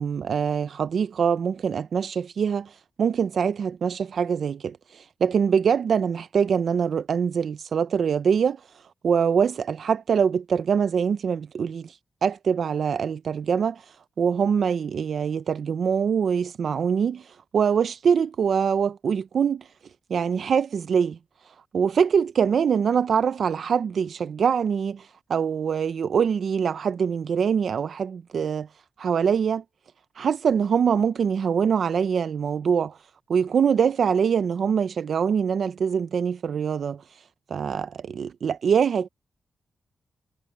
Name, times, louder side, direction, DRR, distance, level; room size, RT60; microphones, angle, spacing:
voice 1, 0.0-19.7 20.1-21.2 21.4-28.7 29.0-29.6 30.2-33.0 33.3-39.1, right 7 dB, 65° right, 0.4 m, -24 dB
wide cardioid pair, 105°, 0 cm